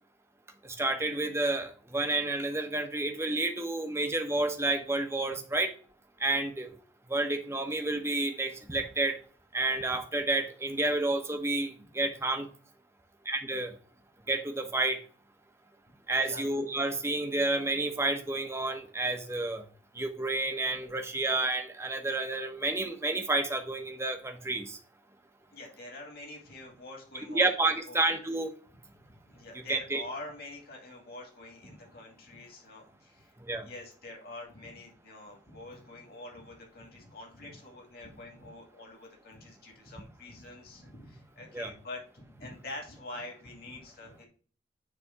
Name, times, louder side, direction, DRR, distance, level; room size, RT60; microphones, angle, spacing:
voice 1, 0.6-5.7 6.2-6.7 7.1-9.2 9.5-12.5 13.2-13.7 14.3-15.0 16.1-19.6 19.9-24.8 27.3-28.5 29.7-30.0 33.4-33.7 41.5-41.7, right 2 dB, 15° right, 5 dB, 0.9 m, -30 dB
voice 2, 25.5-28.0 29.2-33.3 33.6-44.3, left 2 dB, 55° left, 0 dB, 2.6 m, -46 dB
9.8 x 3.4 x 4.6 m, 0.41 s
head